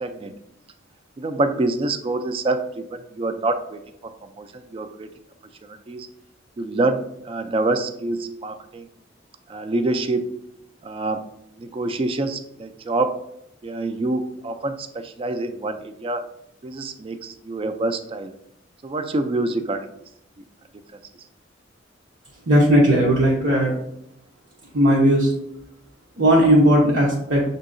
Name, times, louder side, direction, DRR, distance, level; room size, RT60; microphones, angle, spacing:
voice 1, 0.0-0.3 1.2-5.1 5.6-6.1 6.6-8.9 9.5-10.3 10.8-11.3 11.6-13.2 13.6-16.3 16.6-18.3 18.8-19.9, right 2 dB, 30° right, 9 dB, 0.3 m, -26 dB
voice 2, 22.5-23.7 24.7-25.3 26.2-27.4, equal, 85° right, -5 dB, 0.8 m, -16 dB
6.2 x 2.7 x 2.5 m, 0.76 s
head